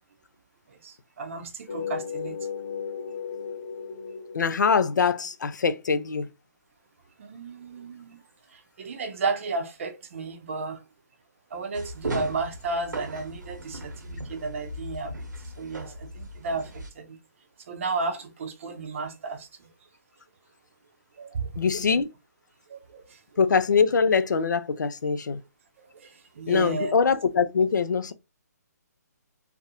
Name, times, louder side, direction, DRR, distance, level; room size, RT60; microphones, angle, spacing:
voice 1, 0.7-2.4 7.2-8.2 8.5-10.8 11.5-15.3 15.6-17.2 17.7-19.7 21.1-22.0 22.7-23.2 25.8-27.0, right 3 dB, 45° right, 0.5 m, -33 dB
sound 1, 1.7-5.2, left 6 dB, 65° left, 0.9 m, -35 dB
voice 2, 4.3-6.3 21.6-22.1 23.4-25.4 26.5-28.1, left 5 dB, 80° left, 0.4 m, -23 dB
sound 2, 11.7-16.9, right 1 dB, 85° right, 0.8 m, -37 dB
2.4 x 2.0 x 2.7 m
hypercardioid pair, 150°, 10 cm